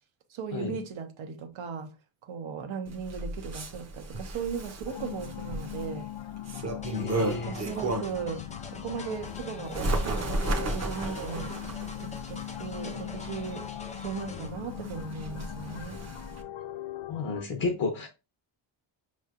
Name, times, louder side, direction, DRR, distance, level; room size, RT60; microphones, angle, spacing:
voice 1, 0.3-1.9 2.2-6.1 7.5-11.5 12.0-13.7 14.0-16.0, right 6 dB, 75° right, 0.9 m, -37 dB
Bird, 2.9-8.3 8.7-16.4, right 1 dB, 35° right, 0.8 m, -34 dB
sound 1, 4.8-17.4, left 14 dB, 70° left, 0.5 m, -40 dB
sound 2, 6.8-14.5, left 3 dB, 15° left, 0.4 m, -45 dB
voice 2, 6.9-7.6 17.1-18.1, left 4 dB, 45° left, 0.8 m, -31 dB
5.4 x 3.2 x 2.4 m
wide cardioid pair, 160°, 49 cm